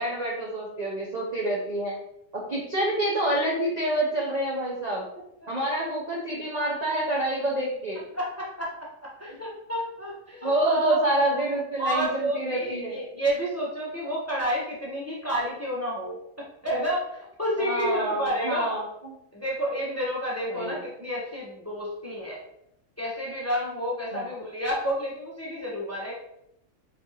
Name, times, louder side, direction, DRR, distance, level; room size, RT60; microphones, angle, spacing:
voice 1, 0.0-2.0 2.3-5.0 5.5-8.0 10.4-13.0 17.6-19.2 20.5-20.8 24.1-24.3, right 1 dB, 45° right, -4 dB, 0.6 m, -27 dB
voice 2, 8.1-8.7 9.0-11.0 11.3-11.4 11.8-16.1 16.6-18.7 19.3-22.4 23.0-26.1, equal, 10° left, -5 dB, 0.8 m, -30 dB
4.1 x 3.2 x 2.9 m, 0.79 s
omnidirectional pair, 1.5 m